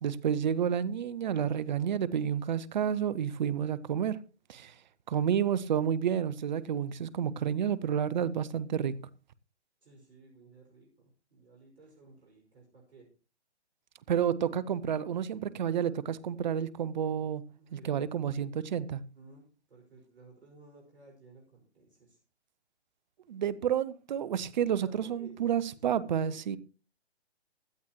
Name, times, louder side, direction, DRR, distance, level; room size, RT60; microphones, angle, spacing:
voice 1, 0.0-4.2 4.5-4.7 5.1-9.0 14.1-17.4 17.7-19.0 23.3-26.6, right 8 dB, 45° right, 0.8 m, -30 dB
voice 2, 9.8-10.9 11.3-13.1 17.6-18.2 19.2-22.2 24.8-25.6 25.9-26.1 26.3-26.6, right 3 dB, 70° right, 5.8 m, -56 dB
16.5 x 12.0 x 3.0 m
figure-of-eight pair, 135°, 33 cm